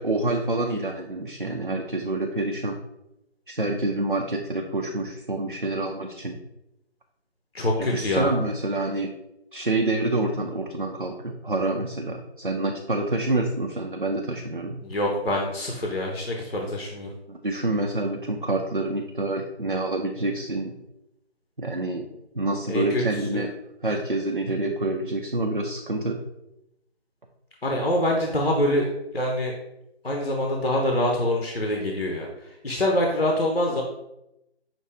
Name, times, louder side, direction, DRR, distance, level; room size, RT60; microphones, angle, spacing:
voice 1, 0.0-2.7 3.5-6.4 7.8-9.1 9.5-14.8 17.3-20.7 21.6-22.0 22.3-23.5 23.8-26.2, right 2 dB, 50° right, 2 dB, 0.5 m, -27 dB
voice 2, 7.5-8.3 14.8-17.1 22.7-23.0 23.3-23.4 27.6-29.5 30.0-33.8, left 1 dB, 60° left, 0 dB, 0.9 m, -25 dB
5.8 x 2.8 x 3.3 m, 0.86 s
figure-of-eight pair, 180°, 33 cm